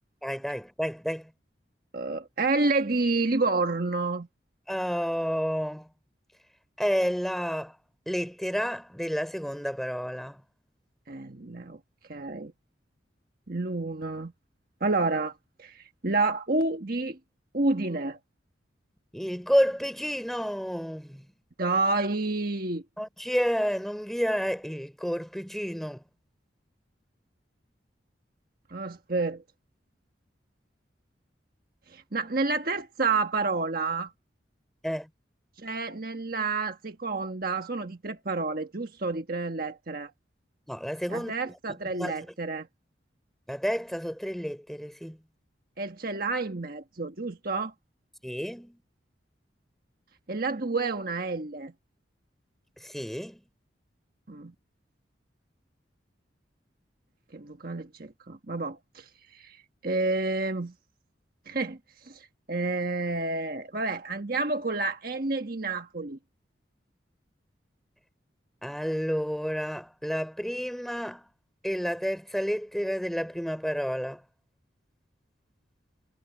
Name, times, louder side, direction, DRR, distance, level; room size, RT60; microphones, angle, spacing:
voice 1, 0.2-1.3 4.7-5.9 6.8-7.8 8.1-10.4 19.1-21.3 23.0-26.0 34.8-35.1 40.7-41.3 41.9-42.1 43.5-45.2 48.2-48.8 52.8-53.4 68.6-71.3 71.6-74.2, equal, ahead, 4.8 m, -30 dB
voice 2, 1.9-4.3 11.1-11.8 12.1-12.5 13.5-14.3 14.8-17.2 17.5-18.2 21.6-22.8 28.7-29.4 31.9-34.1 35.6-40.1 41.1-42.7 45.8-47.7 50.3-51.7 54.3-54.5 57.3-60.7 61.5-66.2, right 3 dB, 50° right, 1.4 m, -29 dB
head